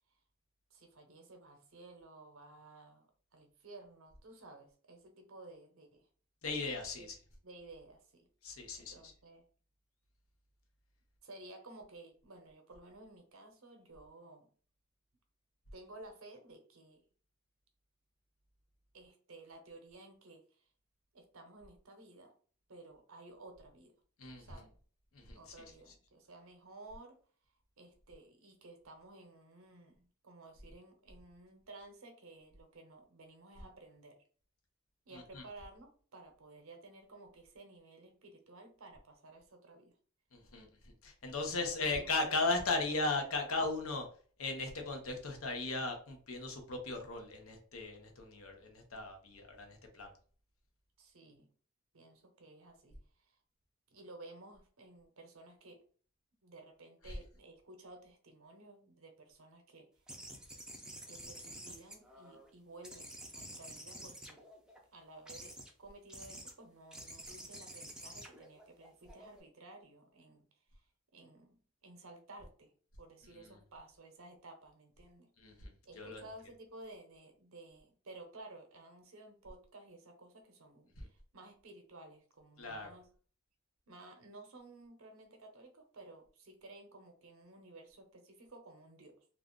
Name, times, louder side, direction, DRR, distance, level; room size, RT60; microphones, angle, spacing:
voice 1, 0.7-6.1 7.0-7.1 7.4-8.3 8.7-9.5 11.2-14.5 15.7-17.1 18.9-20.6 21.1-22.3 22.7-23.9 24.4-24.7 25.3-27.2 27.8-34.2 35.1-40.0 41.4-42.4 51.0-51.5 51.9-53.4 53.9-55.8 56.4-59.9 61.1-64.4 64.9-70.4 70.7-70.9 71.1-72.7 73.0-75.3 75.9-83.1 83.9-89.2, right 2 dB, 70° right, 5 dB, 0.7 m, -55 dB
voice 2, 6.4-7.1 8.4-9.1 24.2-24.4 25.1-25.4 35.1-35.4 40.3-40.7 41.0-44.1 44.4-50.1 57.0-57.2 73.3-73.4 75.4-75.7 76.0-76.2 81.0-81.1 82.6-82.9, left 3 dB, 70° left, 4 dB, 0.8 m, -37 dB
sound 1, 60.1-62.5 62.8-64.8 65.3-65.7 66.1-66.5 66.9-69.4, right 1 dB, 5° right, 0.5 m, -49 dB
2.5 x 2.3 x 3.6 m, 0.44 s
head